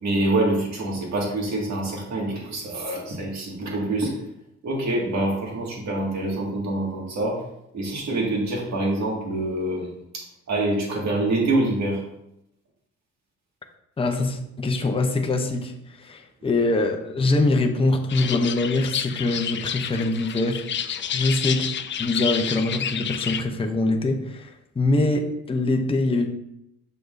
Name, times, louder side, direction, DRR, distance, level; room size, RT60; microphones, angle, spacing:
voice 1, 0.0-4.1 4.6-7.4 7.7-12.0, right 2 dB, 65° right, -2 dB, 2.1 m, -26 dB
voice 2, 14.0-15.7 16.0-20.6 21.1-21.7 22.0-26.3, left 2 dB, 20° left, 4 dB, 0.7 m, -23 dB
sound 1, 18.1-23.4, left 8 dB, 40° left, 0.4 m, -29 dB
6.6 x 5.8 x 2.6 m, 0.82 s
cardioid pair, 90°, 30 cm